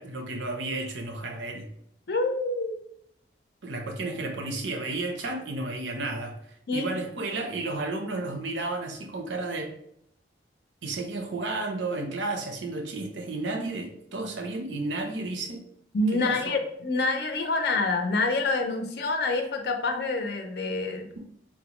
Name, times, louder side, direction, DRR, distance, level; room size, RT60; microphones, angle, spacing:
voice 1, 0.0-1.7 3.6-6.4 6.7-9.7 10.8-15.6 16.1-16.6, right 2 dB, 80° right, 3 dB, 0.6 m, -32 dB
voice 2, 2.1-2.8 6.7-6.9 15.9-21.2, left 3 dB, 55° left, 4 dB, 0.5 m, -27 dB
3.9 x 2.1 x 3.0 m, 0.71 s
head